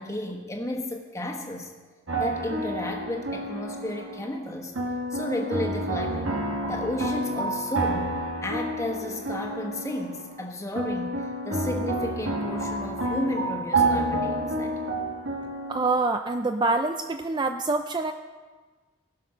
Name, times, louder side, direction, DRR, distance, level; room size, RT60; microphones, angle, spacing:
voice 1, 0.0-1.7 2.2-4.7 5.1-6.3 6.7-8.1 8.4-14.8, left 1 dB, 15° left, 1 dB, 1.3 m, -33 dB
sound 1, 2.1-4.4 4.8-10.5 10.8-15.9, right 1 dB, 80° right, 1.5 m, -29 dB
voice 2, 15.7-18.1, right 3 dB, 20° right, 7 dB, 0.4 m, -25 dB
18.5 x 6.4 x 5.7 m, 1.4 s
head